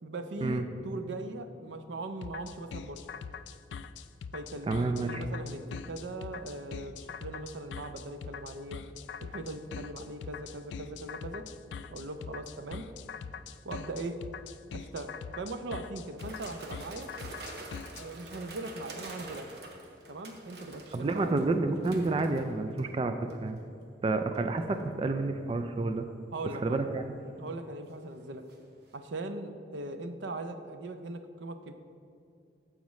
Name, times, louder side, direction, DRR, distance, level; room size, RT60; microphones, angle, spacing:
voice 1, 0.0-3.1 4.3-8.9 9.2-11.5 11.9-12.9 13.6-14.2 14.7-17.1 17.9-19.5 20.1-21.3 26.3-26.9 27.4-28.5 28.9-31.7, right 2 dB, 85° right, 8 dB, 0.6 m, -40 dB
sound 1, 2.2-18.1, left 6 dB, 85° left, 0.3 m, -42 dB
voice 2, 4.7-5.2 20.9-23.6 24.0-26.1 26.6-27.1, right 3 dB, 30° right, 7 dB, 0.3 m, -29 dB
sound 2, 16.2-22.9 23.3-23.6 24.3-24.8 27.0-28.6 28.9-29.0, right 2 dB, 60° right, 1.0 m, -47 dB
14.5 x 5.0 x 3.1 m, 2.5 s
head